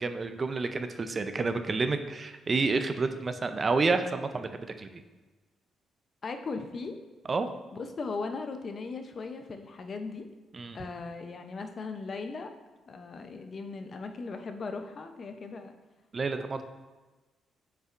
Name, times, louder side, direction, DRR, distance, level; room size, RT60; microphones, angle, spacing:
voice 1, 0.0-5.0 7.3-7.5 10.5-10.8 16.1-16.6, right 3 dB, 35° right, 8 dB, 0.5 m, -29 dB
voice 2, 6.2-7.0 7.7-10.3 10.7-12.5 12.9-15.7, left 4 dB, 45° left, 7 dB, 0.6 m, -38 dB
7.5 x 5.7 x 2.5 m, 1.2 s
cardioid pair, 90°, 0 cm